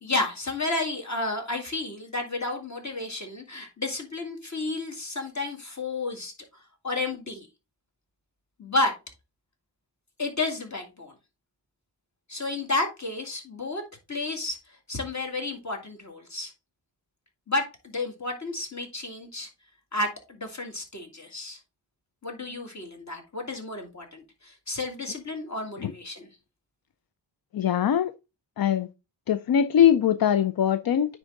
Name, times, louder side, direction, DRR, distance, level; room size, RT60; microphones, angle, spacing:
voice 1, 0.0-6.3 6.8-7.5 8.6-8.9 10.2-11.1 12.3-13.8 14.1-14.6 14.9-16.5 17.5-19.5 19.9-21.6 22.2-26.3, left 2 dB, 40° left, 2.2 m, -31 dB
voice 2, 27.5-28.1 28.6-28.9 29.3-31.2, left 9 dB, 55° left, 0.5 m, -22 dB
9.7 x 3.7 x 3.8 m
wide cardioid pair, 90°, 44 cm